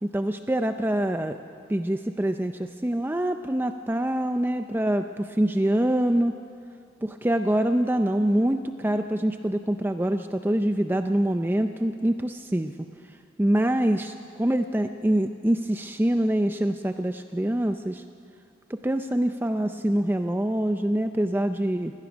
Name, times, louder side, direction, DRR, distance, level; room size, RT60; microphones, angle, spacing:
voice 1, 0.0-1.4 1.7-6.4 7.0-12.7 13.4-18.0 18.7-21.9, right 1 dB, 10° right, 7 dB, 0.4 m, -25 dB
24.5 x 17.5 x 6.2 m, 2.3 s
head